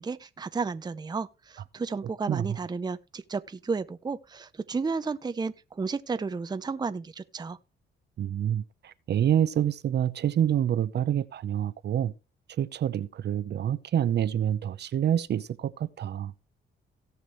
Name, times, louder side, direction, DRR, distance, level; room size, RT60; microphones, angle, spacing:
voice 1, 0.0-7.6, right 4 dB, 20° right, 0.7 m, -32 dB
voice 2, 8.2-12.1 12.6-16.3, right 10 dB, 60° right, 0.8 m, -27 dB
17.5 x 6.1 x 3.2 m
cardioid pair, 90°, 20 cm